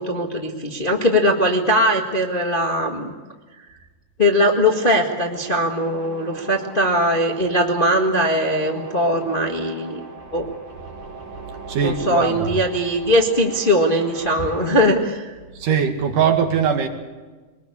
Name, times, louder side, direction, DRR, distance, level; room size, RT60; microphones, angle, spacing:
voice 1, 0.0-3.1 4.2-10.0 10.3-10.5 11.8-15.3, equal, 25° left, 1 dB, 1.1 m, -20 dB
sound 1, 4.7-14.7, right 3 dB, 35° right, 5.8 m, -40 dB
voice 2, 11.7-12.6 14.4-14.5 15.5-16.9, right 7 dB, 70° right, 5 dB, 3.6 m, -21 dB
23.0 x 20.0 x 8.6 m, 1.3 s
omnidirectional pair, 3.9 m